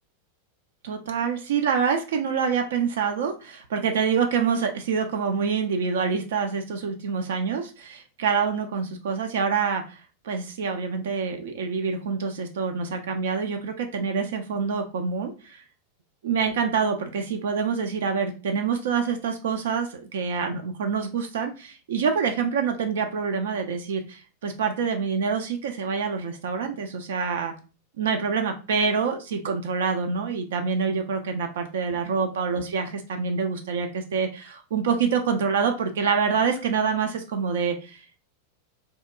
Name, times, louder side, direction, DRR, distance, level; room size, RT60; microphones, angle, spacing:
voice 1, 0.8-15.6 16.2-27.5 28.0-38.0, right 6 dB, 60° right, 5 dB, 0.3 m, -26 dB
2.7 x 2.0 x 2.3 m, 0.33 s
figure-of-eight pair, 90°, 0 cm